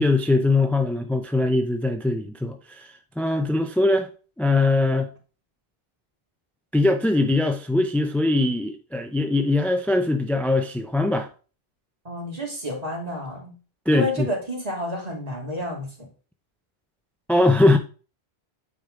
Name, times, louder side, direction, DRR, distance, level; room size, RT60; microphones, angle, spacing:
voice 1, 0.0-4.1 4.4-5.1 6.7-11.3 13.9-14.3 17.3-17.8, left 2 dB, ahead, 0.4 m, -21 dB
voice 2, 12.0-13.6 13.9-16.1, left 1 dB, 40° right, 2.5 m, -30 dB
9.2 x 5.3 x 3.8 m
omnidirectional pair, 1.1 m